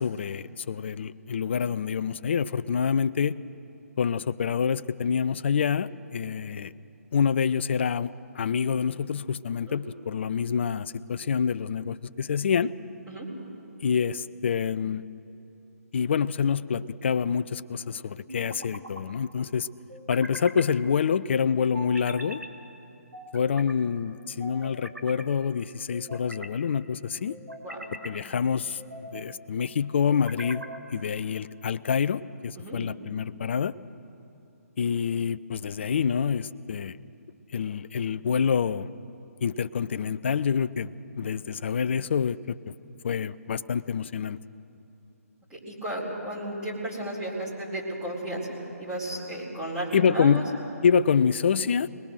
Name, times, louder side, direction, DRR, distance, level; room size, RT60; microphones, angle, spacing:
voice 1, 0.0-3.4 4.0-6.7 7.1-12.7 13.8-15.0 15.9-19.7 20.1-22.4 23.3-27.4 28.0-28.8 29.1-30.6 30.9-33.7 34.8-37.0 37.5-38.9 39.4-42.7 43.0-44.4 49.9-50.4 50.8-51.9, left 6 dB, 45° left, 15 dB, 0.6 m, -27 dB
sound 1, 16.2-16.9 18.3-19.0 19.9-20.7 21.7-22.5 23.1-23.8 24.4-25.2 25.9-26.6 27.3-28.2 28.8-29.3 30.0-30.9, right 1 dB, 90° right, 2.3 m, -42 dB
voice 2, 45.5-48.5 48.8-50.4, right 1 dB, 15° right, -7 dB, 4.4 m, -34 dB
26.0 x 20.0 x 6.4 m, 2.8 s
figure-of-eight pair, 135°, 9 cm